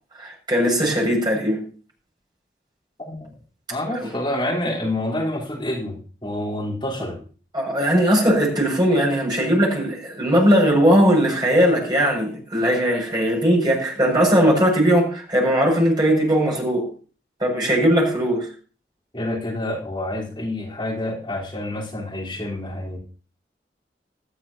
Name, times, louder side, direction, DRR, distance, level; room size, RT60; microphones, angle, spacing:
voice 1, 0.2-1.6 3.9-4.1 7.5-16.9 17.4-18.5, equal, 25° right, -2 dB, 6.7 m, -19 dB
voice 2, 3.7-7.2 19.1-23.0, left 1 dB, 30° left, -5 dB, 4.1 m, -28 dB
18.0 x 13.5 x 2.9 m, 0.39 s
head